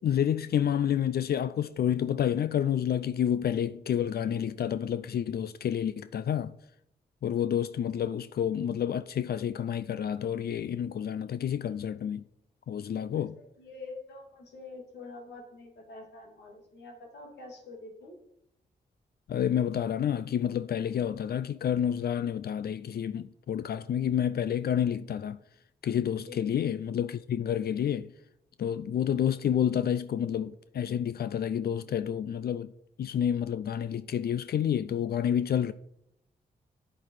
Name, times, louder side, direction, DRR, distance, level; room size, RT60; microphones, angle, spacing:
voice 1, 0.0-6.5 7.2-12.2 12.7-13.4 19.3-25.4 25.8-28.1 28.6-32.7 33.0-35.7, left 9 dB, 65° left, 0.5 m, -29 dB
voice 2, 13.1-18.2 26.3-26.4, left 3 dB, 85° left, 2.8 m, -46 dB
8.8 x 8.7 x 4.8 m
cardioid pair, 55°, 17 cm